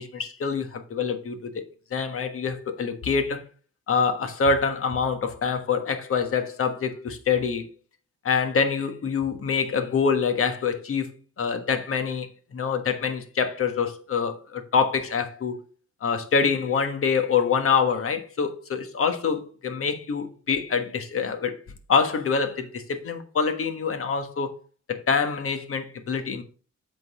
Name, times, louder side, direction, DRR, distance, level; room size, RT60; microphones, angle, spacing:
voice 1, 0.0-1.6 1.9-3.4 3.9-7.7 8.2-11.1 11.4-15.6 16.0-21.6 21.9-24.5 24.9-26.4, left 5 dB, 45° left, 1.3 m, -25 dB
7.8 x 4.0 x 4.8 m
cardioid pair, 90°, 30 cm